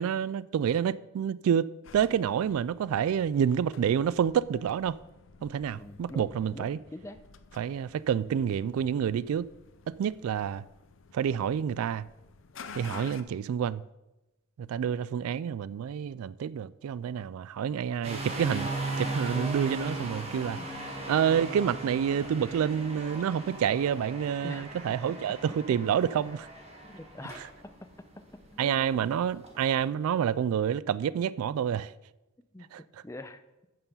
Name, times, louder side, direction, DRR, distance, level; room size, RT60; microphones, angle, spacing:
voice 1, 0.0-5.0 5.4-6.8 7.6-9.5 9.9-10.6 11.1-12.1 12.7-13.8 14.6-18.7 19.0-20.6 21.1-26.5 27.4-27.5 28.6-31.9 32.7-32.8, right 8 dB, 85° right, 0.3 m, -28 dB
sound 1, 1.8-13.2, left 5 dB, 65° left, 0.6 m, -51 dB
voice 2, 5.7-7.3 12.8-13.2 20.6-20.7 24.4-24.6 26.1-26.3 26.8-28.9 32.5-32.7 33.0-33.4, left 1 dB, 15° left, 0.5 m, -45 dB
sound 2, 18.0-29.8, right 2 dB, 30° right, 1.7 m, -38 dB
11.0 x 6.8 x 5.5 m
head